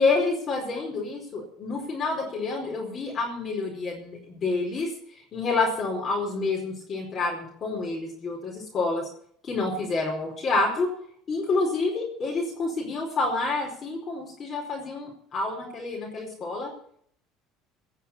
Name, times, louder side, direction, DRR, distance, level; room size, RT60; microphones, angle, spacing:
voice 1, 0.0-4.9 5.3-9.1 9.4-10.9 11.3-16.7, left 3 dB, 40° left, -2 dB, 4.7 m, -28 dB
17.5 x 6.7 x 8.5 m, 0.62 s
supercardioid pair, 95°, 0 cm